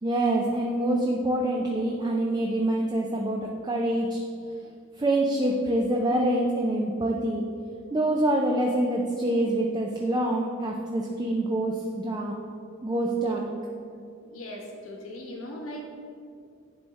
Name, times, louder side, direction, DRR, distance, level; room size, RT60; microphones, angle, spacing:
voice 1, 0.0-4.2 5.0-7.4 7.9-12.3 12.8-13.5, right 1 dB, 20° right, 0 dB, 0.4 m, -26 dB
voice 2, 14.2-15.9, left 1 dB, 85° left, 0 dB, 1.1 m, -39 dB
10.0 x 3.5 x 4.1 m, 2.4 s
head